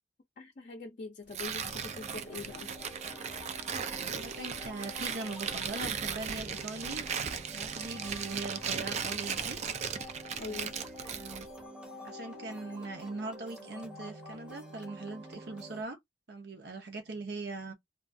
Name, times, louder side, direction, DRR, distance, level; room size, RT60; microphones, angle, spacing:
voice 1, 0.4-2.7 10.4-10.7, left 3 dB, 50° left, 0.5 m, -43 dB
Tearing, 1.3-11.5, right 7 dB, 40° right, 0.3 m, -37 dB
sound 1, 1.5-15.8, equal, 5° right, 0.7 m, -48 dB
voice 2, 4.0-7.1 7.3-9.6 10.5-10.6 11.0-11.5 12.0-16.0 16.3-17.7, right 3 dB, 65° right, 0.7 m, -41 dB
2.4 x 2.3 x 2.5 m
head